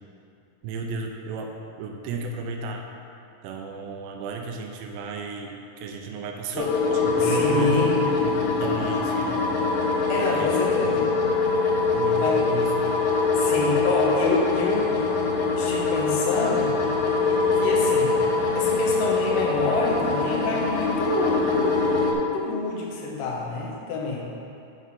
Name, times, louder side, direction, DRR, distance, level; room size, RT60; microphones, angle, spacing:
voice 1, 0.6-2.8 3.4-9.4 10.2-10.5 11.9-12.7, right 4 dB, 80° right, 2 dB, 2.7 m, -33 dB
sound 1, 6.6-22.1, left 4 dB, 90° left, 3.1 m, -23 dB
voice 2, 7.2-7.9 10.1-11.1 12.2-12.4 13.3-15.3 15.6-16.8 17.5-18.2 18.5-22.0 22.3-24.3, left 3 dB, 75° left, -3 dB, 2.0 m, -27 dB
7.4 x 5.9 x 4.2 m, 2.7 s
omnidirectional pair, 5.1 m